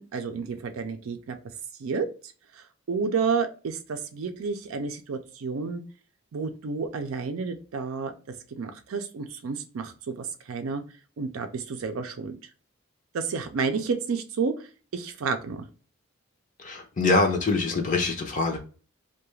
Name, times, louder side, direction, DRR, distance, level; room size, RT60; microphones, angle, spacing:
voice 1, 0.0-1.4 1.8-2.1 2.5-5.8 6.3-8.1 8.5-10.8 11.2-12.4 13.1-14.5 14.9-15.7, right 5 dB, 80° right, 0.4 m, -30 dB
voice 2, 16.6-18.6, left 3 dB, 40° left, 0.5 m, -24 dB
2.3 x 2.2 x 3.0 m
head